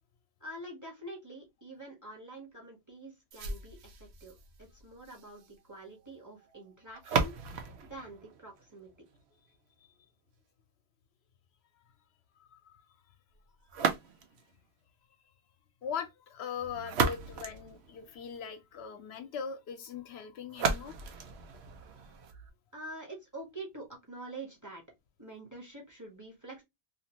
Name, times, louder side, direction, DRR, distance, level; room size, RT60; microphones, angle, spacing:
voice 1, 0.4-7.3 7.8-8.9 22.7-24.8 25.2-26.6, right 2 dB, 20° right, 0.9 m, -46 dB
sound 1, 3.3-9.3 13.7-14.5 16.6-18.5 20.5-22.5, right 5 dB, 85° right, 0.9 m, -35 dB
voice 2, 15.8-21.0, left 6 dB, 75° left, 0.8 m, -40 dB
2.6 x 2.5 x 2.8 m
omnidirectional pair, 1.1 m